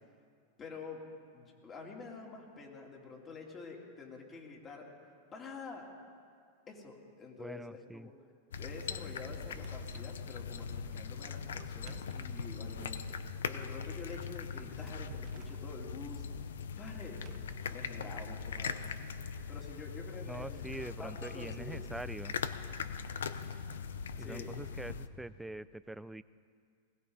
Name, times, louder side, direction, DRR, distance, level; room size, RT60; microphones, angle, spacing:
voice 1, 0.6-1.0 1.3-4.9 5.3-5.9 6.7-8.1 8.6-16.2 16.8-17.3 17.7-18.9 19.5-21.9 24.2-24.5, left 4 dB, 25° left, -1 dB, 3.2 m, -48 dB
voice 2, 7.4-8.1 20.2-22.3 24.2-26.2, right 2 dB, 5° right, 15 dB, 0.4 m, -44 dB
sound 1, 8.5-25.1, left 6 dB, 85° left, 0.7 m, -41 dB
Drawer open or close, 9.1-10.2 11.4-13.0 14.4-15.7 17.0-18.7, right 8 dB, 40° right, 1.1 m, -56 dB
20.0 x 17.5 x 4.1 m, 2.1 s
hypercardioid pair, 120°, 0 cm